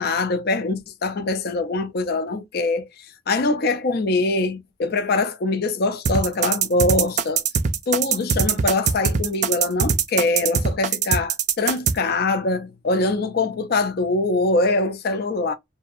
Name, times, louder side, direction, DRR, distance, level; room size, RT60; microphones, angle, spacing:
voice 1, 0.0-7.4 7.9-15.5, left 2 dB, 50° left, 0.4 m, -23 dB
sound 1, 6.1-12.0, right 6 dB, 35° right, 0.3 m, -21 dB
2.8 x 2.6 x 2.4 m
head